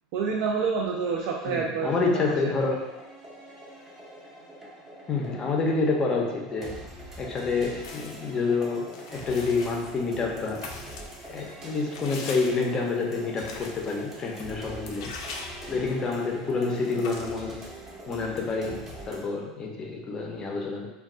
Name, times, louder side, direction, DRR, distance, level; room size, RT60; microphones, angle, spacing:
voice 1, 0.1-2.5, right 5 dB, 65° right, -1 dB, 0.4 m, -28 dB
voice 2, 1.5-2.9 5.1-6.8 7.2-10.7 11.3-15.1 15.7-17.6 18.1-20.9, left 3 dB, 25° left, 0 dB, 0.5 m, -28 dB
sound 1, 2.0-19.2, right 1 dB, 15° right, 0.6 m, -44 dB
sound 2, 7.8-8.4 8.9-16.2 16.5-16.6 16.8-17.4, left 4 dB, 80° left, 0.4 m, -43 dB
2.2 x 2.2 x 3.7 m, 1.1 s
supercardioid pair, 130°, 3 cm